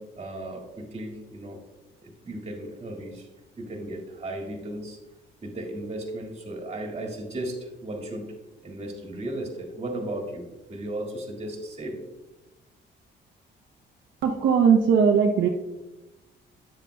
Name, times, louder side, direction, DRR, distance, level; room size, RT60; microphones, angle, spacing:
voice 1, 0.0-1.6 2.0-3.3 3.6-5.0 5.4-8.3 8.6-12.0, right 1 dB, 30° right, 1 dB, 1.9 m, -35 dB
voice 2, 14.2-15.5, right 6 dB, 70° right, 1 dB, 0.7 m, -19 dB
8.9 x 7.4 x 2.2 m, 1.0 s
cardioid pair, 90°, 20 cm